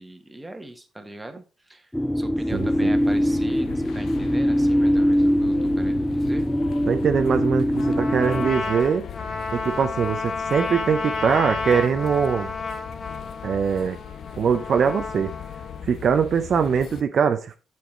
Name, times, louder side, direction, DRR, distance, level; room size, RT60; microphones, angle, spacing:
voice 1, 0.0-6.5, right 1 dB, 15° right, 1.2 m, -40 dB
sound 1, 1.9-8.5, equal, 5° left, 0.4 m, -22 dB
sound 2, 2.5-17.0, left 8 dB, 65° left, 0.5 m, -39 dB
voice 2, 2.5-2.9 6.9-9.1 9.5-12.5 13.4-14.0 14.4-15.3 15.9-17.6, right 6 dB, 55° right, 0.5 m, -22 dB
Trumpet, 7.8-15.8, left 4 dB, 45° left, 1.2 m, -31 dB
7.0 x 4.7 x 4.2 m
cardioid pair, 90°, 0 cm